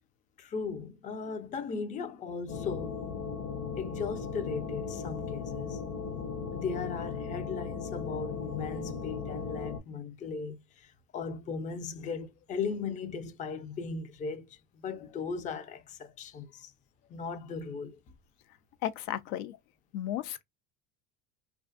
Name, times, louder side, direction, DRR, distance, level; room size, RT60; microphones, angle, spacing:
voice 1, 0.4-3.0 3.8-5.8 6.5-16.7 17.1-18.0, left 5 dB, 20° left, 0.3 m, -37 dB
sound 1, 2.5-9.8, left 5 dB, 45° left, 0.9 m, -37 dB
voice 2, 18.8-19.5 19.9-20.4, left 12 dB, 85° left, 0.5 m, -34 dB
2.4 x 2.3 x 2.2 m
supercardioid pair, 100°, 41 cm